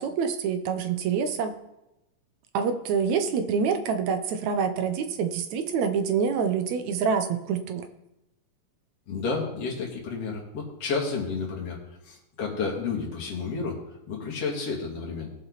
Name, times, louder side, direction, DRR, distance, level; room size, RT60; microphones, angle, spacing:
voice 1, 0.0-1.5 2.5-7.9, right 6 dB, 70° right, 8 dB, 2.1 m, -26 dB
voice 2, 9.1-11.8 12.0-13.8 14.1-15.3, left 4 dB, 50° left, -2 dB, 3.5 m, -31 dB
19.5 x 7.7 x 4.1 m, 0.90 s
omnidirectional pair, 3.7 m